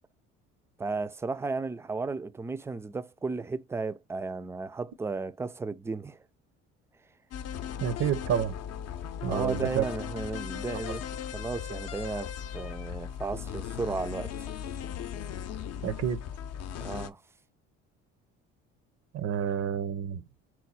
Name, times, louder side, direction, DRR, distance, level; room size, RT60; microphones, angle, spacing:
voice 1, 0.8-6.2 9.3-14.5 16.8-17.2, right 3 dB, 10° right, 0.3 m, -34 dB
sound 1, 7.3-17.1, left 9 dB, 60° left, 0.6 m, -37 dB
voice 2, 7.8-8.5 9.2-9.8 15.8-16.2 19.1-20.2, right 9 dB, 55° right, 0.6 m, -29 dB
4.3 x 2.2 x 4.1 m
supercardioid pair, 85°, 29 cm